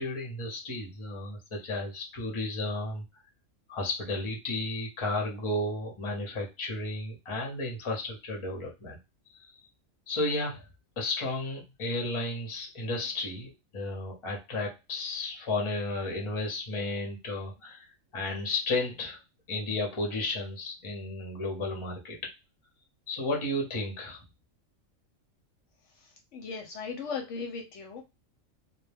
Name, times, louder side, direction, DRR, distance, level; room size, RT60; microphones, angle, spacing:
voice 1, 0.0-3.0 3.7-9.0 9.4-9.5 10.1-10.6 11.0-19.2 19.5-22.2 23.1-24.2, left 2 dB, 30° left, 0 dB, 0.6 m, -33 dB
voice 2, 26.3-28.0, left 5 dB, 70° left, 2 dB, 0.8 m, -37 dB
2.2 x 2.2 x 3.3 m, 0.25 s
omnidirectional pair, 1.4 m